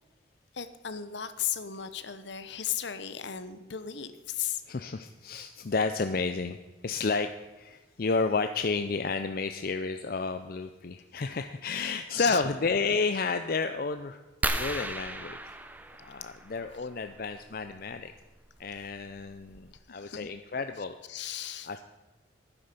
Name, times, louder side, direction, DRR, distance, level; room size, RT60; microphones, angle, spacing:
voice 1, 0.5-4.6 12.1-12.4 14.5-14.6 19.9-20.3 21.1-21.7, left 9 dB, 65° left, 12 dB, 0.9 m, -35 dB
voice 2, 4.7-6.6 6.8-14.2 14.5-15.4 16.0-18.1 18.6-21.0 21.6-21.8, left 4 dB, 50° left, 9 dB, 0.5 m, -31 dB
sound 1, 14.4-16.8 18.4-18.6 19.2-19.3 19.5-19.8, right 2 dB, 10° right, 0.7 m, -34 dB
11.5 x 9.8 x 6.8 m, 1.2 s
head